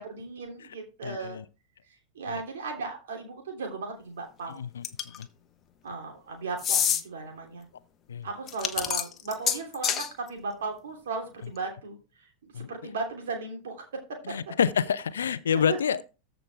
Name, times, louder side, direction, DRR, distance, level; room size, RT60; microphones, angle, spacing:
voice 1, 0.0-1.4 2.1-4.6 5.8-7.7 8.2-13.8 14.3-14.4 15.7-15.8, right 4 dB, 60° right, 2.8 m, -36 dB
voice 2, 1.0-1.4 2.3-2.4 4.5-4.8 5.2-5.3 8.1-8.3 12.5-12.7 14.2-16.0, left 7 dB, 65° left, 0.6 m, -28 dB
sound 1, 4.8-5.2 6.6-7.0 8.5-10.1, left 8 dB, 25° left, 1.0 m, -26 dB
14.0 x 5.1 x 3.4 m
figure-of-eight pair, 90°, 0 cm